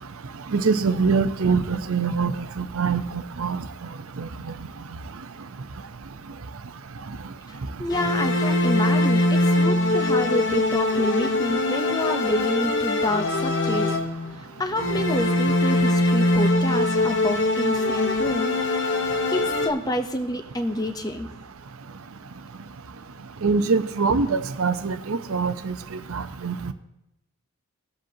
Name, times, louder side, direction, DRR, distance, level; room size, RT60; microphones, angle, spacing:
voice 1, 0.5-3.0 3.4-3.6 4.2-4.3 23.4-25.7 26.1-26.6, right 4 dB, 75° right, 10 dB, 0.7 m, -23 dB
voice 2, 7.5-14.0 14.4-18.5 18.8-21.3, left 1 dB, 15° left, 6 dB, 0.7 m, -28 dB
sound 1, 7.9-14.4 14.8-19.7, left 2 dB, 55° left, 0.9 m, -22 dB
19.0 x 7.8 x 2.8 m, 0.89 s
head